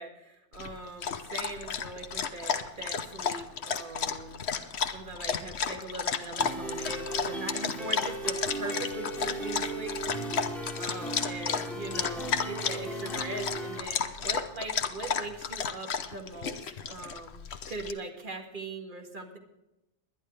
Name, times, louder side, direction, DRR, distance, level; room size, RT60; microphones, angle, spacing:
voice 1, 0.0-10.5 10.8-17.4 17.7-19.4, right 2 dB, 45° right, 3 dB, 2.0 m, -41 dB
Dog, 0.5-17.9, left 6 dB, 60° left, 1.1 m, -33 dB
sound 1, 6.4-13.8, right 1 dB, ahead, 3.3 m, -37 dB
22.0 x 10.5 x 3.3 m, 0.93 s
omnidirectional pair, 1.2 m